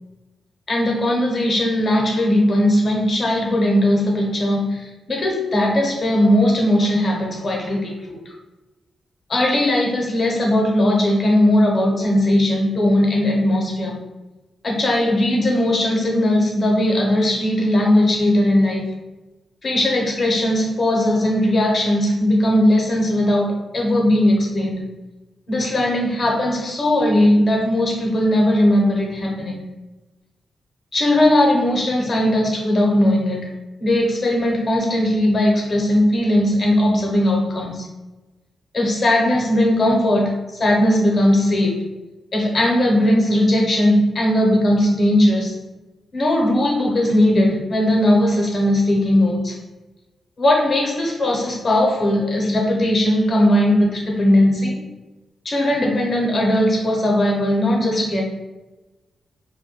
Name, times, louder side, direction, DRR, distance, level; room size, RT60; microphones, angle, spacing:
voice 1, 0.7-8.2 9.3-14.0 14.6-18.9 19.6-24.9 25.5-29.6 30.9-33.5 33.8-37.9 38.7-41.8 42.3-45.6 46.1-49.6 50.4-54.8 55.4-58.2, left 1 dB, 50° left, -1 dB, 0.7 m, -18 dB
2.2 x 2.2 x 2.9 m, 1.1 s
cardioid pair, 80°, 0 cm